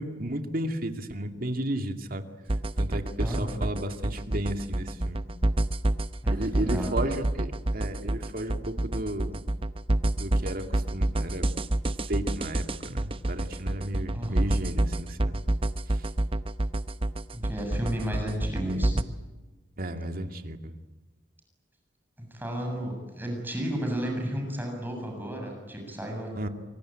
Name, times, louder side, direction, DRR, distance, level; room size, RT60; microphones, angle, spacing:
voice 1, 0.0-2.2 2.8-5.2 6.3-9.4 10.2-11.5 12.1-15.4 15.9-16.0 19.8-20.7 26.4-26.5, right 1 dB, 50° right, 6 dB, 2.4 m, -33 dB
sound 1, 2.5-19.0, right 1 dB, 30° right, 0.8 m, -28 dB
voice 2, 3.2-3.6 6.2-6.9 14.1-14.5 17.3-19.0 22.2-26.3, equal, 10° right, 1 dB, 7.4 m, -33 dB
27.0 x 24.0 x 9.1 m, 1.2 s
head